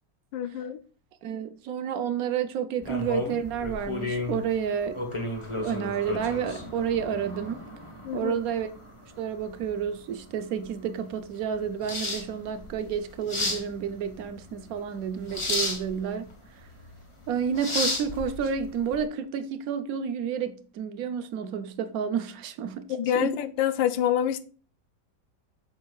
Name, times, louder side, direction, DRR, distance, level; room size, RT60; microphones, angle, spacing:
voice 1, 0.3-0.8 8.0-8.3 22.9-24.4, left 10 dB, 85° left, 1.3 m, -26 dB
voice 2, 1.2-5.0 5.6-7.6 8.1-8.7 9.2-16.3 17.3-22.8 23.1-23.3, right 7 dB, 60° right, 1.0 m, -30 dB
sound 1, 2.8-19.0, left 2 dB, 20° left, 0.8 m, -34 dB
7.9 x 6.3 x 2.3 m
omnidirectional pair, 2.0 m